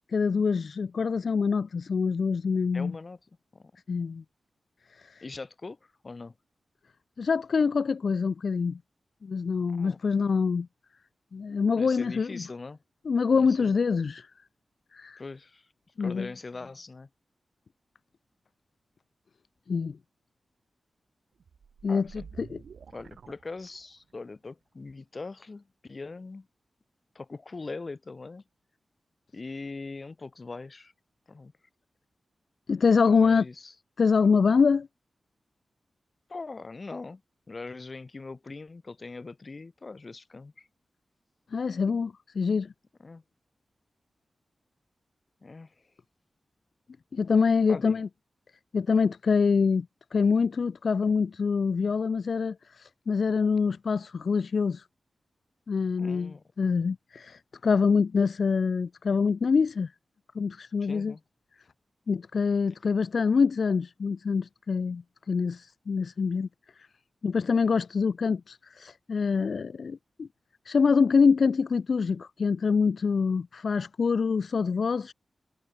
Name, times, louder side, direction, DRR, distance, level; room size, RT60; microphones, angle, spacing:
voice 1, 0.1-3.0 3.9-4.2 4.9-5.2 7.2-8.8 9.2-10.7 11.3-12.4 13.1-14.3 14.9-15.2 16.0-16.3 19.7-20.0 21.8-22.6 32.7-33.5 34.0-34.9 41.5-42.7 47.1-48.1 48.7-49.9 50.1-54.8 55.7-59.9 60.3-61.2 62.1-66.5 66.8-66.9 67.2-70.3 70.7-75.1, left 5 dB, 60° left, 0.4 m, -25 dB
voice 2, 2.7-3.2 3.5-3.7 5.2-5.8 6.0-6.3 9.7-10.0 11.7-12.8 13.3-13.7 15.2-15.7 16.0-17.1 21.9-22.3 22.9-26.5 27.1-28.4 29.3-30.9 31.3-31.5 33.0-33.7 36.3-37.2 37.5-40.7 43.0-43.2 45.4-45.7 47.7-48.0 56.0-56.4 60.8-61.2, left 3 dB, 35° left, 3.0 m, -41 dB
sound 1, 21.4-24.1, right 6 dB, 90° right, 5.9 m, -49 dB
wide cardioid pair, 155°, 0 cm